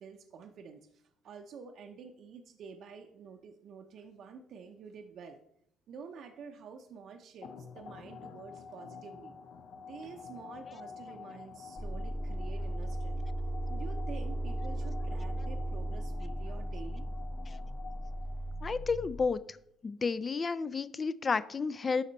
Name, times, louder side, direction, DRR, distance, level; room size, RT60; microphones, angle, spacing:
voice 1, 0.0-5.4 5.9-9.3 9.8-13.2 13.7-17.1, right 6 dB, 60° right, 4 dB, 0.7 m, -49 dB
sound 1, 7.4-18.8, left 5 dB, 65° left, 0.8 m, -49 dB
sound 2, 11.8-19.3, right 1 dB, 5° left, 0.8 m, -36 dB
voice 2, 18.6-19.6 19.8-22.0, left 4 dB, 30° left, 15 dB, 0.3 m, -32 dB
12.0 x 4.2 x 4.0 m, 0.73 s
cardioid pair, 120°, 0 cm